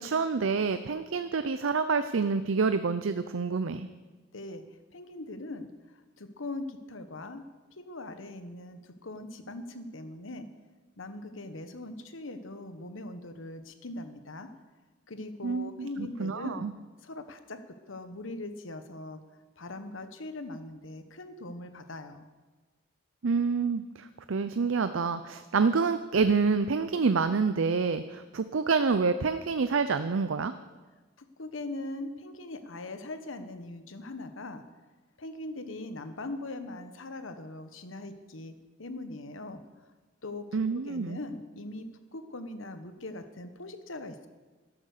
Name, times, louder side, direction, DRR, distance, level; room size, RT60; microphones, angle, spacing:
voice 1, 0.0-3.9 15.4-16.7 23.2-30.5 40.5-41.2, right 4 dB, 80° right, 11 dB, 0.6 m, -27 dB
voice 2, 4.3-4.7 4.9-7.4 7.7-10.5 11.0-14.5 15.1-16.7 17.0-19.2 19.6-22.3 31.2-34.6 35.2-39.6 40.2-44.3, left 2 dB, 80° left, 9 dB, 1.2 m, -41 dB
12.5 x 12.0 x 6.6 m, 1.3 s
head